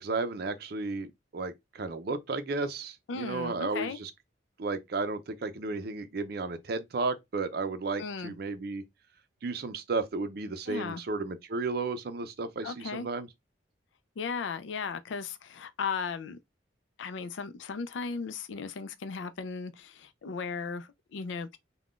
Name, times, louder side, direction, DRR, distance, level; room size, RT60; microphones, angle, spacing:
voice 1, 0.0-4.1 4.6-8.8 9.4-13.3, right 3 dB, 55° right, 0.5 m, -33 dB
voice 2, 3.1-4.0 8.0-8.3 10.7-11.0 12.6-13.1 14.2-16.4 17.0-21.6, left 5 dB, 80° left, 0.4 m, -36 dB
3.6 x 2.2 x 2.4 m
head